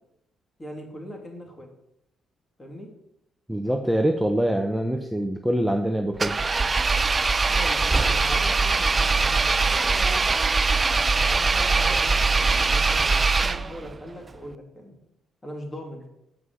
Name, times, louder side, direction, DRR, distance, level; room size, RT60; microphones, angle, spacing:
voice 1, 0.6-1.7 2.6-2.9 7.5-10.4 11.1-15.0 15.4-16.1, equal, 20° left, 2 dB, 2.8 m, -40 dB
voice 2, 3.5-6.4, right 1 dB, 5° right, 4 dB, 0.9 m, -24 dB
Engine, 6.2-13.9, right 4 dB, 30° right, 0.4 m, -22 dB
7.6 x 6.1 x 7.9 m, 0.79 s
cardioid pair, 90°, 0 cm